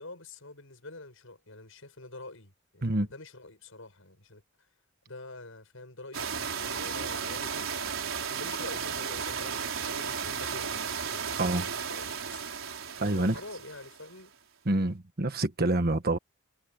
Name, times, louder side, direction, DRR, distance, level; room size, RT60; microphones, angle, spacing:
voice 1, 0.0-4.7 5.1-7.7 8.3-12.4 12.9-14.3, left 2 dB, 75° left, 7.9 m, -47 dB
sound 1, 6.1-14.1, right 6 dB, 75° right, 4.7 m, -34 dB
voice 2, 13.0-13.3 14.7-16.2, right 2 dB, 50° right, 1.4 m, -27 dB
head